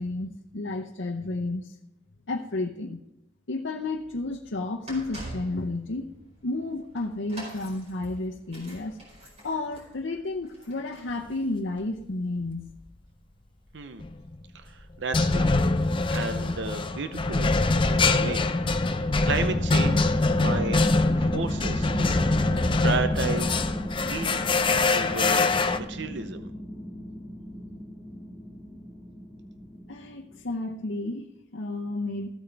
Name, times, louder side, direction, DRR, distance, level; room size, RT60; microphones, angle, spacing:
voice 1, 0.0-1.7 2.3-3.0 3.5-6.1 6.4-9.0 9.4-12.7 29.9-32.3, left 2 dB, 75° left, 0 dB, 0.8 m, -32 dB
sound 1, 3.8-20.8 21.4-21.5, right 1 dB, 35° right, 4.8 m, -49 dB
sound 2, 14.0-14.3 15.1-25.8, left 3 dB, 25° left, 0.6 m, -24 dB
voice 2, 14.5-15.5 16.1-18.4 18.8-23.6 24.0-24.6 24.9-26.5, right 4 dB, 65° right, 9 dB, 0.7 m, -33 dB
sound 3, 18.6-30.7, equal, 15° right, 4.4 m, -35 dB
15.0 x 8.9 x 3.4 m, 0.89 s
head